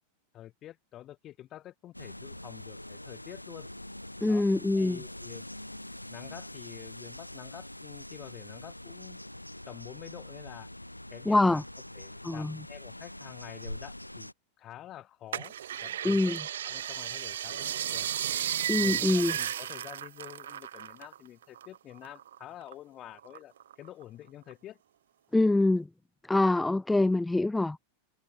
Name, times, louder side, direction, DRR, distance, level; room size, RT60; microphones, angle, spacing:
voice 1, 0.3-3.7 4.3-4.4 4.8-5.5 6.1-9.2 9.7-10.7 11.1-11.6 11.9-14.3 14.6-15.5 15.8-18.1 18.8-24.8, left 13 dB, 30° left, 7.9 m, -48 dB
sound 1, 1.9-14.3, left 1 dB, 85° left, 1.9 m, -44 dB
voice 2, 4.2-5.0 11.2-11.6 12.2-12.6 16.0-16.4 18.7-19.3 25.3-25.9 26.3-27.8, left 2 dB, 5° left, 1.4 m, -25 dB
sound 2, 15.3-21.2 21.4-22.7 23.2-24.0 24.5-24.6, right 10 dB, 60° right, 1.3 m, -34 dB
figure-of-eight pair, 90°, 0 cm